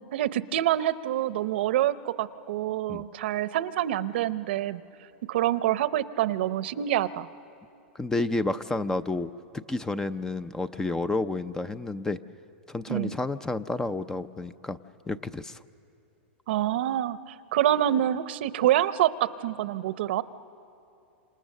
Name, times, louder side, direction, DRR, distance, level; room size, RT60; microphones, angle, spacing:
voice 1, 0.1-4.8 5.3-7.3 12.9-13.1 16.5-20.2, right 12 dB, 65° right, 14 dB, 0.8 m, -26 dB
voice 2, 7.9-12.2 12.7-14.8 15.1-15.6, left 2 dB, 10° left, 13 dB, 0.6 m, -30 dB
27.5 x 27.0 x 6.6 m, 2.8 s
hypercardioid pair, 135°, 6 cm